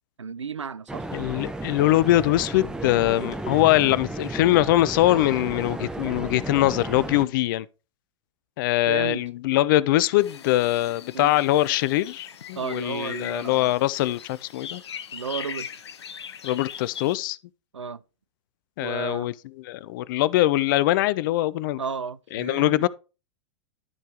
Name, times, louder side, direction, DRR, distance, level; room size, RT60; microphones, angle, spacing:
voice 1, 0.2-1.1 8.9-9.2 11.1-11.4 12.5-13.7 15.1-15.7 17.7-18.0 18.8-19.3 21.8-22.9, right 6 dB, 80° right, 0.5 m, -33 dB
sound 1, 0.9-7.2, right 2 dB, 5° right, 0.8 m, -34 dB
voice 2, 1.1-7.7 8.6-14.8 16.4-17.4 18.8-19.3 19.7-21.8 22.3-22.9, left 15 dB, 45° left, 0.5 m, -22 dB
sound 2, 10.2-17.2, left 8 dB, 65° left, 0.9 m, -40 dB
12.5 x 4.6 x 3.6 m
figure-of-eight pair, 95°, 15 cm